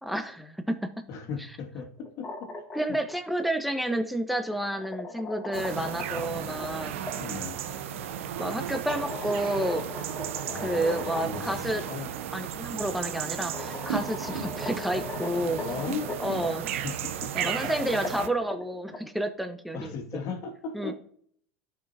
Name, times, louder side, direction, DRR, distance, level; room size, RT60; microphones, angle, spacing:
voice 1, 0.0-0.9 2.7-6.9 8.4-9.8 10.5-11.8 12.3-15.6 16.2-16.7 17.3-19.9 20.7-20.9, right 1 dB, ahead, 6 dB, 1.1 m, -30 dB
voice 2, 1.1-2.5 7.1-7.6 10.5-12.1 14.3-14.5 15.5-16.1 16.8-17.3 19.7-20.9, left 5 dB, 50° left, 3 dB, 2.3 m, -37 dB
sound 1, 2.0-3.1 4.3-7.1 8.7-11.5 11.9-12.0 13.0-13.1 13.5-16.5 17.3-19.0, left 2 dB, 25° left, 2.5 m, -39 dB
sound 2, 5.5-18.3, right 9 dB, 75° right, 0.8 m, -35 dB
16.0 x 5.8 x 2.8 m, 0.62 s
hypercardioid pair, 85°, 7 cm